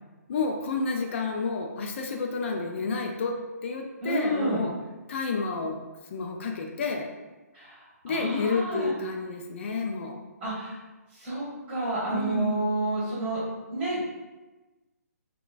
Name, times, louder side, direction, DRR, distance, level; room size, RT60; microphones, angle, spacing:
voice 1, 0.3-4.8 5.1-5.8 6.1-7.1 8.0-10.2 12.1-12.7, left 4 dB, 45° left, 3 dB, 0.3 m, -30 dB
voice 2, 4.0-4.6 7.5-8.9 10.4-10.8 11.1-13.4 13.7-14.1, right 2 dB, 15° right, -9 dB, 1.5 m, -30 dB
3.7 x 2.1 x 2.4 m, 1.2 s
figure-of-eight pair, 140°, 9 cm